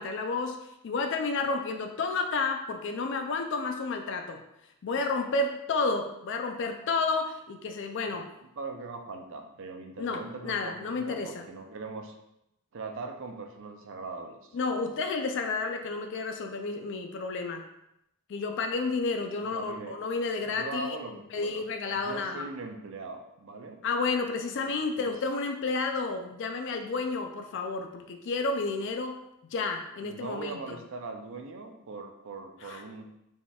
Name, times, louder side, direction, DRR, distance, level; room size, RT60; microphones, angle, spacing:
voice 1, 0.0-4.4 4.8-8.3 10.0-11.5 14.5-17.6 18.3-21.0 21.3-22.5 23.8-29.2 29.5-30.8 32.6-32.8, left 3 dB, 55° left, 5 dB, 0.4 m, -31 dB
voice 2, 8.6-12.1 12.7-14.6 19.4-20.0 20.5-23.8 24.8-25.1 30.0-33.1, right 3 dB, 60° right, 5 dB, 0.5 m, -40 dB
4.1 x 3.5 x 2.3 m, 0.83 s
head